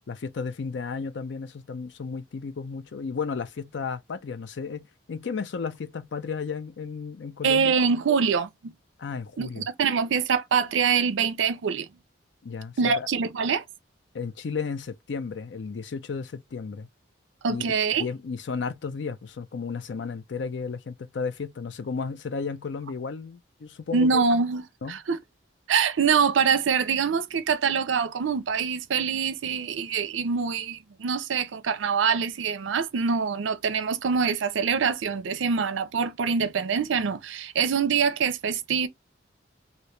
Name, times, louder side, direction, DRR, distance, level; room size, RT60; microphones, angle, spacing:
voice 1, 0.1-7.8 9.0-9.7 12.4-13.1 14.1-16.9 17.5-17.6 18.0-24.2 24.8-25.0, left 5 dB, 65° left, 0.4 m, -33 dB
voice 2, 7.4-8.7 9.4-11.9 12.8-13.6 17.4-18.1 23.9-24.6 24.9-25.2 25.7-38.9, right 6 dB, 75° right, 0.5 m, -24 dB
2.9 x 2.7 x 3.1 m
head